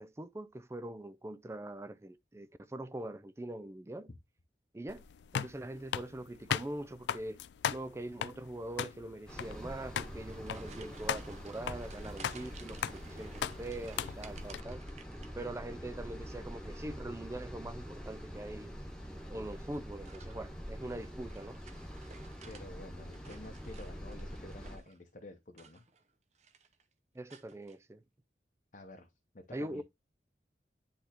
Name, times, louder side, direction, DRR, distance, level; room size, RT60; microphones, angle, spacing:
voice 1, 0.0-4.1 4.7-5.0 5.3-7.4 7.7-14.8 15.4-18.7 19.3-21.6 27.1-28.0 29.5-29.8, right 1 dB, 15° right, 0.3 m, -43 dB
sound 1, 4.9-14.6, left 8 dB, 80° left, 0.3 m, -39 dB
sound 2, 9.3-24.8, equal, 5° left, 1.3 m, -45 dB
sound 3, 10.0-15.9 16.2-16.8 18.2-18.6 19.6-22.7 23.0-25.0 25.5-26.1 26.3-26.8 27.3-27.8, right 5 dB, 40° right, 0.7 m, -56 dB
voice 2, 22.4-25.8 28.7-29.8, left 2 dB, 45° left, 0.8 m, -50 dB
10.0 x 3.4 x 2.9 m
head